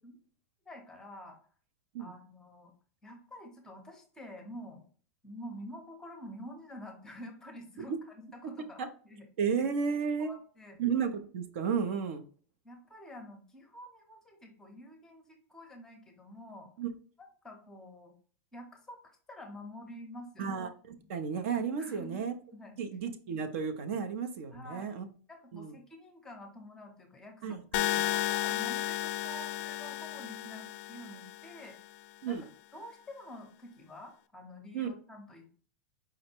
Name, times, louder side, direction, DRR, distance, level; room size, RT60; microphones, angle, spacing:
voice 1, 0.7-1.4 2.0-2.7 3.0-4.9 5.2-9.3 10.2-10.8 12.6-16.7 17.2-18.1 18.5-19.0 19.3-20.6 21.8-22.3 22.5-22.8 24.5-25.0 25.3-31.8 32.3-32.4 32.7-35.7, left 1 dB, 5° left, 3 dB, 0.7 m, -48 dB
voice 2, 9.4-10.3 10.8-12.3 16.8-16.9 20.4-22.3 22.8-25.1 25.5-25.7 27.4-28.0 32.2-32.4 34.7-34.9, right 6 dB, 60° right, 8 dB, 0.6 m, -33 dB
sound 1, 27.7-31.8, left 14 dB, 50° left, 0.3 m, -33 dB
4.9 x 2.1 x 4.3 m, 0.43 s
supercardioid pair, 165°, 8 cm